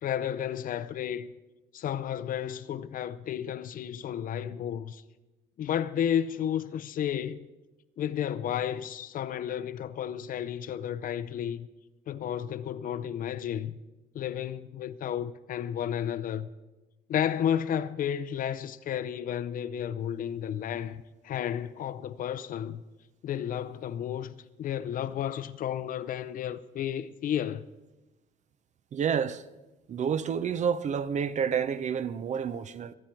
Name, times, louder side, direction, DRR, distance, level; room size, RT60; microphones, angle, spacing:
voice 1, 0.0-1.3 1.7-5.0 5.6-7.5 8.0-11.7 12.1-13.8 14.1-16.5 17.1-22.8 23.2-27.7, left 9 dB, 55° left, 0.6 m, -32 dB
voice 2, 28.9-29.4 29.9-32.9, right 7 dB, 45° right, 0.7 m, -29 dB
26.0 x 8.9 x 4.6 m
cardioid pair, 110°, 17 cm